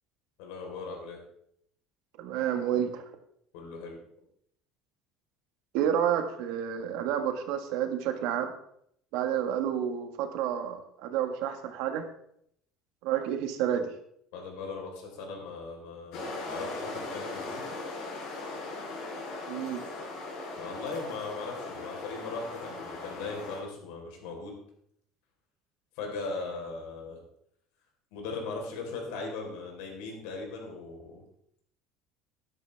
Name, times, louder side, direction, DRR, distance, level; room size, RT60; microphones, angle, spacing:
voice 1, 0.4-1.2 3.5-4.0 14.3-17.6 20.6-24.6 26.0-27.2 28.1-31.2, left 3 dB, 85° left, 1 dB, 4.0 m, -39 dB
voice 2, 2.2-3.0 5.7-8.5 9.1-12.1 13.0-13.9 19.5-19.8, right 9 dB, 70° right, 6 dB, 1.5 m, -30 dB
sound 1, 16.1-23.6, left 3 dB, 60° left, 4.8 m, -39 dB
12.5 x 10.5 x 3.4 m, 0.71 s
cardioid pair, 170°, 0 cm